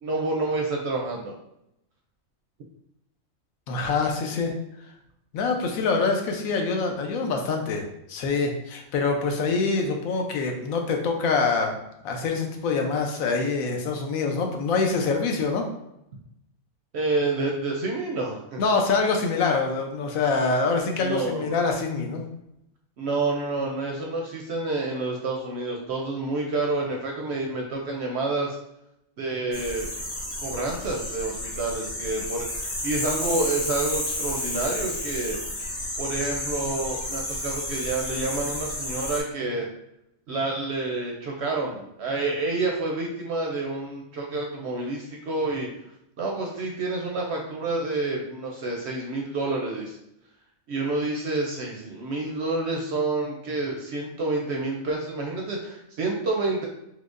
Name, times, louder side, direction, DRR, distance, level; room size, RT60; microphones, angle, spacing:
voice 1, 0.0-1.3 16.9-18.6 21.0-21.5 23.0-28.6 29.2-29.9 30.4-35.4 36.0-39.7 40.3-45.7 46.2-50.0 50.7-56.7, right 2 dB, 65° right, 0 dB, 0.7 m, -28 dB
voice 2, 3.7-4.5 5.3-11.8 12.0-15.6 18.6-22.2, left 4 dB, 80° left, 3 dB, 1.0 m, -25 dB
sound 1, 29.5-39.2, left 1 dB, 35° left, 0.8 m, -31 dB
4.5 x 2.1 x 2.4 m, 0.80 s
omnidirectional pair, 1.5 m